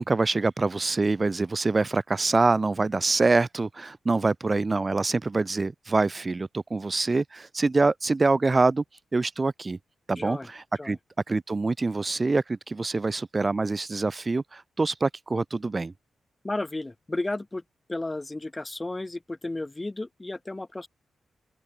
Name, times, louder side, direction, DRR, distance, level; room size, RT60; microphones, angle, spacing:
voice 1, 0.0-8.8 9.1-9.8 10.1-11.0 11.3-15.9, right 3 dB, 35° right, 0.5 m, -25 dB
voice 2, 10.2-10.5 10.8-11.0 16.4-17.6 17.9-20.9, left 2 dB, 25° left, 0.8 m, -33 dB
open air
supercardioid pair, 40°, 0 cm